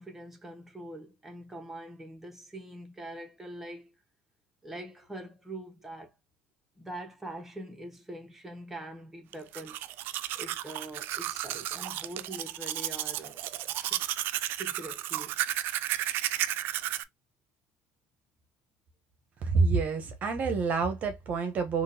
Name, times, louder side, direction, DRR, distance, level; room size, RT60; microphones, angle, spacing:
voice 1, 0.0-4.0 4.6-6.1 6.8-9.8 10.3-13.4 13.8-14.0 14.5-15.3, right 1 dB, 5° right, 1.1 m, -43 dB
Domestic sounds home sounds, 9.3-17.0, right 13 dB, 60° right, 0.3 m, -33 dB
voice 2, 19.4-21.8, right 4 dB, 45° right, 0.8 m, -27 dB
3.7 x 2.5 x 2.7 m
supercardioid pair, 95°, 4 cm